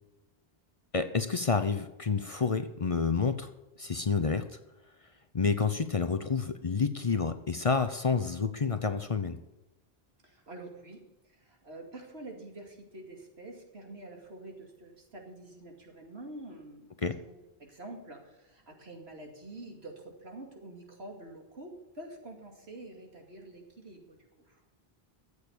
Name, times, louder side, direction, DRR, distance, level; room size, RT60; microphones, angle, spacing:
voice 1, 0.9-3.5 3.8-4.4 5.3-9.4 17.0-17.2, left 5 dB, 40° left, 10 dB, 0.7 m, -29 dB
voice 2, 10.2-11.0 11.3-17.0 17.3-24.2 24.5-24.6, right 2 dB, 85° right, 1 dB, 2.7 m, -47 dB
13.5 x 8.2 x 7.0 m, 1.0 s
omnidirectional pair, 1.0 m